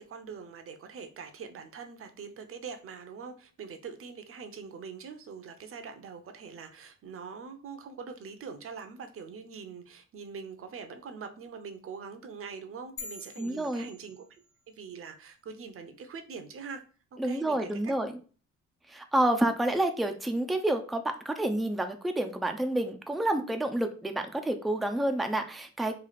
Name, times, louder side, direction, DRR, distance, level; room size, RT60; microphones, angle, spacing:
voice 1, 0.0-16.8 17.1-17.9, right 5 dB, 45° right, 7 dB, 0.7 m, -43 dB
sound 1, 13.0-14.7, left 3 dB, 55° left, 1.2 m, -46 dB
voice 2, 13.4-13.9 17.2-18.1 18.9-26.0, right 1 dB, ahead, 6 dB, 0.4 m, -29 dB
3.2 x 2.4 x 4.0 m, 0.38 s
cardioid pair, 90°, 30 cm